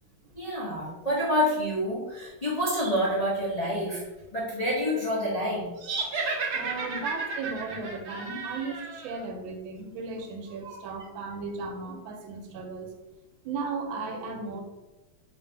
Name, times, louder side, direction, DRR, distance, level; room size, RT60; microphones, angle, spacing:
voice 1, 0.3-4.0 4.3-5.7 6.2-6.3, equal, 55° left, -9 dB, 0.4 m, -28 dB
sound 1, 5.8-9.2, right 4 dB, 70° right, 1.0 m, -33 dB
voice 2, 6.5-12.9 13.4-14.6, right 4 dB, 85° right, 4 dB, 1.4 m, -36 dB
3.2 x 2.6 x 4.3 m, 1.1 s
omnidirectional pair, 2.2 m